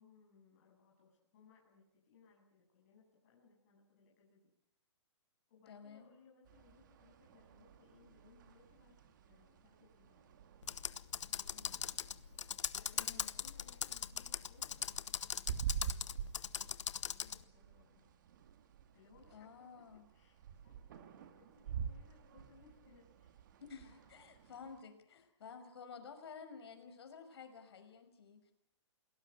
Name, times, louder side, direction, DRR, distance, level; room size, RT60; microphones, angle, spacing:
voice 1, 0.0-4.4 5.5-10.4 11.3-11.9 12.8-16.5 17.0-18.1 18.9-19.9 20.1-23.4 23.8-24.2 25.4-25.6, left 5 dB, 35° left, -3 dB, 8.0 m, -66 dB
voice 2, 5.7-6.1 12.9-13.3 19.3-20.1 23.6-28.5, left 6 dB, 60° left, 8 dB, 5.6 m, -52 dB
sound 1, 6.4-24.8, right 8 dB, 40° right, 2.2 m, -48 dB
Computer keyboard, 10.6-17.4, left 8 dB, 90° left, 1.1 m, -40 dB
28.0 x 18.0 x 9.7 m, 0.74 s
hypercardioid pair, 175°, 15 cm